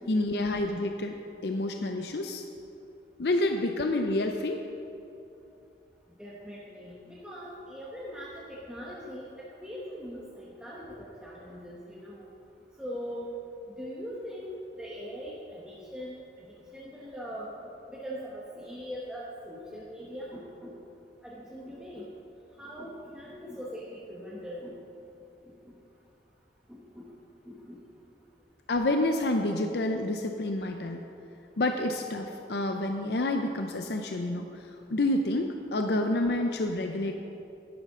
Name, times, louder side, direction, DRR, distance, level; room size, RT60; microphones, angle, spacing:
voice 1, 0.1-1.1 1.4-2.4 3.2-4.6 28.7-31.0 31.6-37.1, left 2 dB, 65° left, 4 dB, 0.6 m, -28 dB
voice 2, 6.2-12.3 12.8-13.3 13.8-17.5 17.9-20.7 21.2-22.1 22.6-24.7 26.7-27.0 27.4-27.8, equal, 5° right, -7 dB, 1.1 m, -41 dB
11.5 x 11.0 x 3.7 m, 2.9 s
head